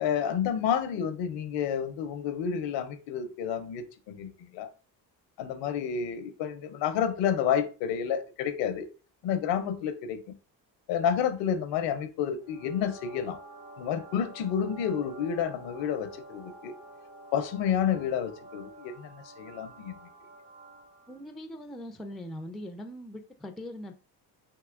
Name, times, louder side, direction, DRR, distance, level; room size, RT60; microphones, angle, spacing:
voice 1, 0.0-4.7 5.4-8.9 9.2-10.2 10.9-13.4 13.8-16.7 17.3-19.9, left 8 dB, 80° left, 0.7 m, -30 dB
sound 1, 12.4-21.2, right 2 dB, 55° right, 1.1 m, -49 dB
voice 2, 21.1-23.9, left 1 dB, ahead, 0.3 m, -41 dB
3.6 x 2.8 x 2.4 m
supercardioid pair, 75°, 43 cm